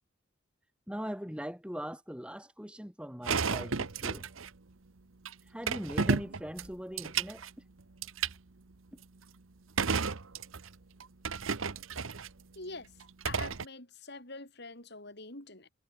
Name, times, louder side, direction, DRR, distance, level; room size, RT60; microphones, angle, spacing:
voice 1, 0.9-4.3 5.5-7.4, equal, 5° right, 5.9 m, -41 dB
sound 1, 3.2-4.5 5.3-5.4 5.7-7.5 8.0-8.3 9.8-10.7 11.0-12.3 13.0-13.7, right 5 dB, 90° right, 1.1 m, -32 dB
voice 2, 12.6-13.0 13.2-15.7, left 3 dB, 55° left, 6.1 m, -45 dB
head